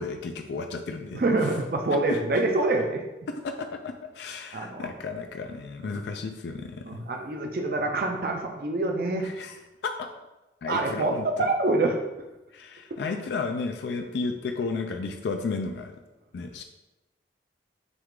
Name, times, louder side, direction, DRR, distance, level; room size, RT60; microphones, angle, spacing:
voice 1, 0.0-1.2 2.1-2.2 3.3-7.0 9.2-10.1 10.6-11.5 12.5-16.0 16.3-16.6, left 4 dB, 75° left, 5 dB, 0.3 m, -33 dB
voice 2, 1.1-3.0 4.5-4.9 5.8-5.9 6.9-9.3 10.7-12.0 12.9-13.0, right 2 dB, 55° right, 2 dB, 0.4 m, -26 dB
6.0 x 2.4 x 3.6 m, 1.0 s
head